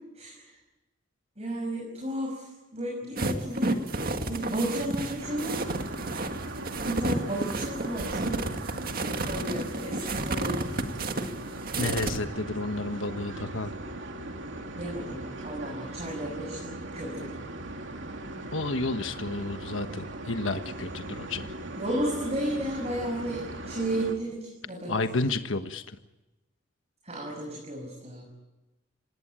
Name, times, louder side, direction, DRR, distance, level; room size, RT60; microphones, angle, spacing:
voice 1, 0.1-0.6 1.4-3.8 4.2-5.8 6.8-8.4 8.9-10.6 14.8-17.4 21.8-25.0 27.0-28.3, right 1 dB, 35° right, 0 dB, 5.9 m, -33 dB
sound 1, 3.2-12.2, right 2 dB, 50° right, 2.0 m, -31 dB
sound 2, 5.2-24.2, right 2 dB, 75° right, 2.7 m, -39 dB
voice 2, 11.8-13.7 18.5-21.5 24.9-26.0, left 2 dB, 90° left, 8 dB, 1.4 m, -31 dB
27.0 x 19.0 x 9.0 m, 1.0 s
head